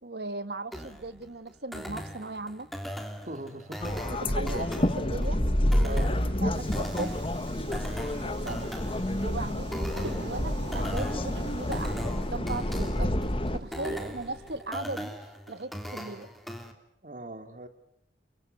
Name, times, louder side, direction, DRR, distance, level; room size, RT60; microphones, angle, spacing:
voice 1, 0.0-2.7 4.2-5.4 5.8-6.0 6.4-7.1 8.4-8.7 9.2-13.1 13.5-15.2 15.5-16.3, right 2 dB, 65° right, 11 dB, 1.5 m, -37 dB
sound 1, 0.7-16.7, equal, ahead, 3.2 m, -40 dB
voice 2, 3.3-3.9 5.8-6.1 8.2-8.6 13.7-14.2 17.0-17.7, right 1 dB, 45° right, 7 dB, 3.0 m, -40 dB
sound 2, 3.8-13.6, left 1 dB, 30° left, 1.4 m, -29 dB
Subway metro underground, 5.8-14.6, right 1 dB, 80° right, 6.7 m, -45 dB
29.5 x 24.0 x 6.7 m, 0.75 s
head